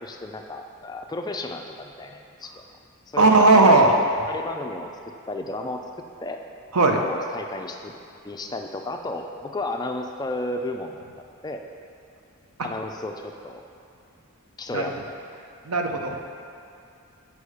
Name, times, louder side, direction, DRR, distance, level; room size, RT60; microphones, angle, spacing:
voice 1, 0.0-2.6 3.1-3.9 4.3-4.9 5.3-5.8 6.2-6.4 7.0-7.9 8.2-11.0 11.3-11.6 12.6-13.6 14.6-15.2, left 2 dB, 20° left, 4 dB, 0.4 m, -33 dB
voice 2, 3.2-3.9 6.7-7.0 14.7-14.8 15.6-16.2, right 2 dB, 90° right, 3 dB, 0.8 m, -16 dB
8.3 x 5.3 x 4.9 m, 2.6 s
head